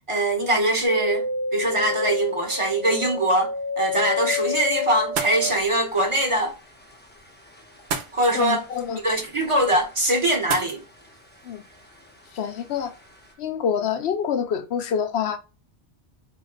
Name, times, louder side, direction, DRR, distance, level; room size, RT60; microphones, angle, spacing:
voice 1, 0.1-1.3 1.5-3.5 3.8-6.5 8.1-8.6 9.0-10.8, right 1 dB, 30° right, 0.9 m, -22 dB
sound 1, 0.8-10.2 10.5-11.4 11.7-12.7 13.0-13.1, left 4 dB, 10° left, 0.6 m, -31 dB
sound 2, 5.0-13.4, right 5 dB, 65° right, 0.8 m, -38 dB
voice 2, 8.3-9.0 11.4-11.6 12.3-12.9 13.4-15.4, left 8 dB, 90° left, 0.9 m, -26 dB
4.4 x 2.1 x 3.8 m
omnidirectional pair, 1.1 m